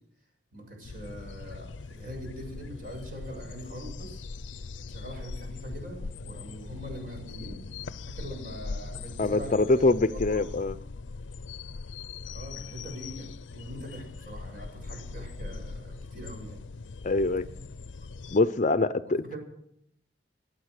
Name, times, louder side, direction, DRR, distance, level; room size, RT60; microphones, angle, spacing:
voice 1, 0.5-4.2 4.9-7.6 8.1-10.4 12.3-16.6 19.0-19.4, equal, 50° right, 6.9 m, -42 dB
sound 1, 0.8-18.4, left 4 dB, 90° left, 0.6 m, -41 dB
voice 2, 9.2-10.8 17.0-17.5 18.3-19.4, left 2 dB, 40° left, 0.6 m, -24 dB
25.0 x 8.9 x 6.6 m
head